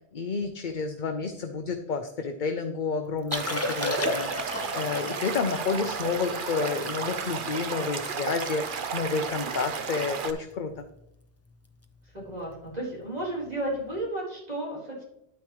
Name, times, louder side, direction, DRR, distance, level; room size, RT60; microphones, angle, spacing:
voice 1, 0.1-10.8, left 5 dB, 50° left, 6 dB, 0.8 m, -30 dB
Liquid, 3.2-8.6 9.0-9.1 9.4-9.7 9.9-10.2 10.8-11.0 12.5-12.6, left 1 dB, 15° left, 0.7 m, -34 dB
Stream / Liquid, 3.3-10.3, right 6 dB, 50° right, 0.9 m, -33 dB
voice 2, 6.0-6.4 12.1-15.0, right 1 dB, 35° right, -4 dB, 4.2 m, -34 dB
10.0 x 9.3 x 3.1 m, 0.82 s
omnidirectional pair, 1.2 m